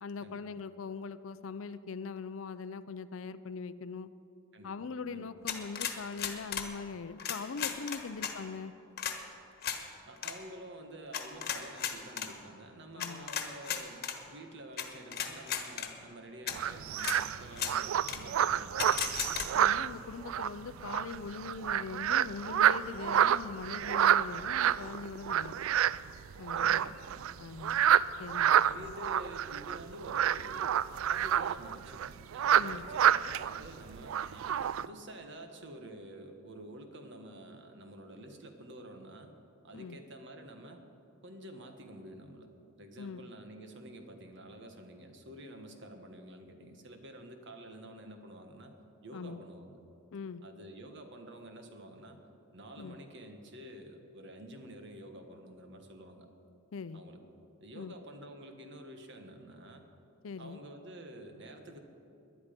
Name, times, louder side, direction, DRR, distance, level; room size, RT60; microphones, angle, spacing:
voice 1, 0.0-4.1 4.6-8.7 13.0-13.3 19.5-25.7 26.4-26.8 27.4-27.8 28.2-28.9 32.5-32.8 39.7-40.0 43.0-43.3 49.1-49.4 50.1-50.4 52.8-53.0 56.7-57.0 57.7-57.9 60.2-60.6, left 5 dB, 70° left, 14 dB, 0.5 m, -41 dB
sound 1, 5.5-6.7 7.2-8.3 9.0-9.2 9.6-9.8 10.2-10.3 11.1-12.3 13.0-14.2 14.8-14.9 15.1-15.9 16.5-16.6 17.0-17.2 17.5-17.7 18.1-18.2 18.8-19.5, left 8 dB, 50° left, 1.3 m, -35 dB
voice 2, 10.0-19.3 25.4-25.7 26.5-27.9 28.7-39.3 39.6-40.8 41.2-42.5 42.8-48.8 49.0-49.8 50.4-52.2 52.5-56.3 56.9-57.2 57.6-59.8 60.4-61.8, right 1 dB, 60° right, 5 dB, 1.5 m, -49 dB
sound 2, 16.5-34.9, right 10 dB, 75° right, 0.3 m, -29 dB
19.0 x 11.0 x 5.2 m, 2.9 s
head